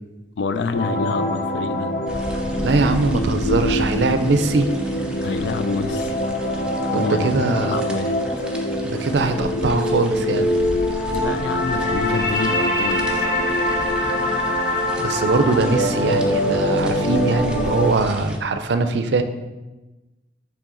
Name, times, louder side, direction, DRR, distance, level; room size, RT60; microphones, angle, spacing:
voice 1, 0.4-1.9 5.2-6.2 6.9-8.4 11.1-13.2, left 4 dB, 70° left, 11 dB, 0.4 m, -27 dB
sound 1, 0.7-17.9, left 1 dB, 50° left, 0.7 m, -23 dB
sound 2, 2.1-18.4, equal, 5° right, 0.5 m, -34 dB
voice 2, 2.6-4.7 6.9-7.8 8.8-10.5 15.0-19.2, right 3 dB, 70° right, 8 dB, 0.5 m, -21 dB
7.5 x 3.6 x 3.8 m, 1.1 s
head